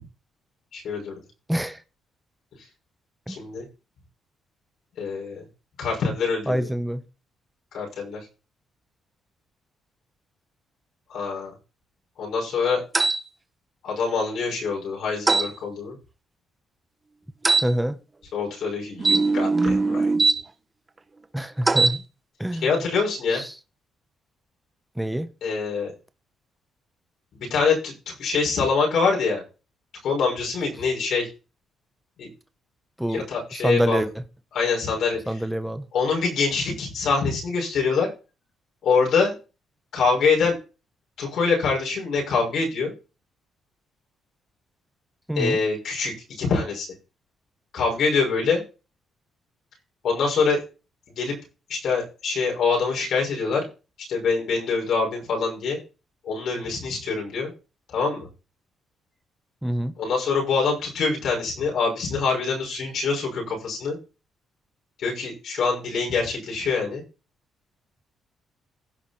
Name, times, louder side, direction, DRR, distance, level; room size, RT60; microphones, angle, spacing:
voice 1, 0.7-1.2 3.3-3.7 5.0-5.5 5.8-6.7 7.7-8.3 11.1-11.5 12.2-12.8 13.8-16.0 18.3-20.1 22.6-23.4 25.4-25.9 27.3-29.4 30.0-31.3 32.2-32.3 33.1-34.0 34.5-35.3 35.9-38.1 38.8-39.4 39.9-40.6 41.2-42.9 45.4-46.9 47.7-48.6 50.0-50.6 51.1-51.4 51.7-53.7 54.1-55.8 56.2-57.5 57.9-58.3 60.0-64.0 65.0-67.0, left 4 dB, 70° left, 6.0 m, -25 dB
voice 2, 1.5-1.8 3.3-3.4 6.5-7.0 17.6-18.0 21.3-22.0 22.4-22.7 23.3-23.5 25.0-25.3 33.0-33.2 33.6-34.2 35.3-35.9 45.3-45.6 59.6-59.9, right 1 dB, 5° right, 1.1 m, -26 dB
sound 1, 12.9-13.2 15.3-15.5 17.4-17.7 19.0-20.4 21.6-22.0, right 3 dB, 25° right, 0.9 m, -20 dB
16.0 x 5.7 x 4.4 m
cardioid pair, 90°, 0 cm